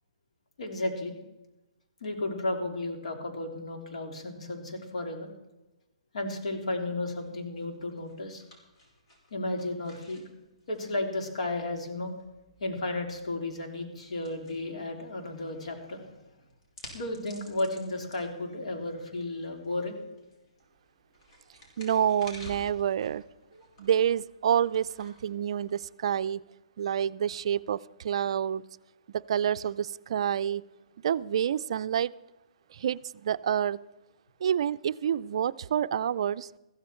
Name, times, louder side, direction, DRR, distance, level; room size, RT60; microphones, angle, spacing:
voice 1, 0.6-1.2 2.0-5.3 6.1-8.4 9.3-10.2 10.7-12.1 12.6-16.1 16.9-20.0 23.5-23.6, left 2 dB, 70° left, 3 dB, 3.2 m, -33 dB
sound 1, 7.2-26.4, left 1 dB, 45° left, 5.1 m, -54 dB
voice 2, 21.8-23.2 23.8-26.4 26.8-28.6 29.3-30.6 31.0-32.1 32.7-33.8 34.4-36.5, right 9 dB, 55° right, 14 dB, 0.4 m, -28 dB
15.0 x 14.0 x 4.4 m, 1.0 s
hypercardioid pair, 155°, 4 cm